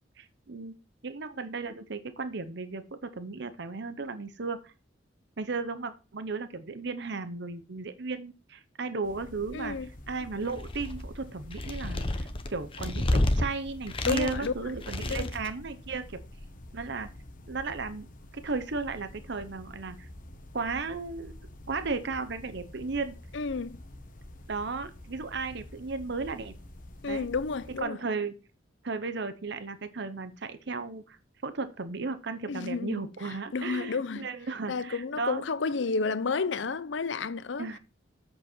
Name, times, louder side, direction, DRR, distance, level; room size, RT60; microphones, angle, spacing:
voice 1, 0.2-0.7 1.0-4.7 5.4-9.8 10.1-16.2 16.7-17.1 17.5-18.1 18.3-20.1 20.5-21.3 21.7-23.2 24.5-26.5 27.1-27.3 27.8-28.3 28.8-35.4 37.6-37.8, right 4 dB, 65° right, 0.8 m, -35 dB
sound 1, 9.0-27.8, left 1 dB, 45° left, 1.2 m, -47 dB
voice 2, 9.5-9.9 14.1-14.5 15.1-15.3 23.3-23.8 27.0-28.0 32.5-33.0 33.5-34.3 34.7-37.7, left 4 dB, 70° left, 0.6 m, -31 dB
sound 2, 10.4-11.1 11.5-13.4 13.9-14.5 14.8-15.5, left 1 dB, 30° left, 0.9 m, -29 dB
7.9 x 6.9 x 4.4 m
head